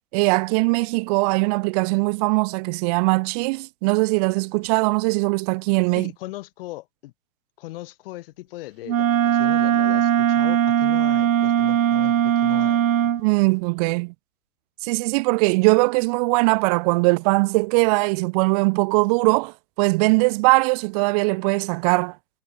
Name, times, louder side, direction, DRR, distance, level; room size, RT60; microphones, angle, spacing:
voice 1, 0.1-6.1 13.2-14.1 14.8-22.1, right 29 dB, 25° right, 1.5 m, -21 dB
voice 2, 5.9-7.1 7.6-12.8, left 18 dB, 40° left, 7.1 m, -38 dB
Wind instrument woodwind instrument, 8.9-13.2, right 10 dB, 65° right, 4.7 m, -20 dB
hypercardioid pair, 160°, 44 cm